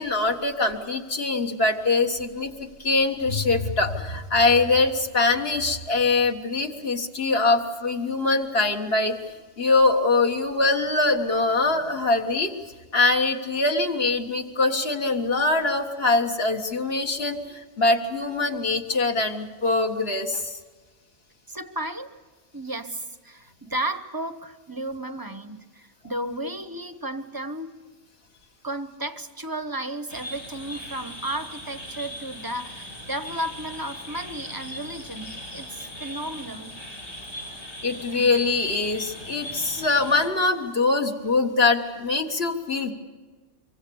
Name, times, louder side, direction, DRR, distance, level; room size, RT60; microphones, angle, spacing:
voice 1, 0.0-2.5 2.8-12.5 12.9-20.6 37.8-42.9, left 3 dB, 55° left, 3 dB, 1.8 m, -23 dB
voice 2, 21.5-22.1 22.5-27.8 28.6-36.7, right 1 dB, 20° right, 11 dB, 0.8 m, -33 dB
sound 1, 30.1-40.3, equal, 85° left, 5.1 m, -39 dB
24.5 x 24.5 x 7.0 m, 1.4 s
omnidirectional pair, 1.3 m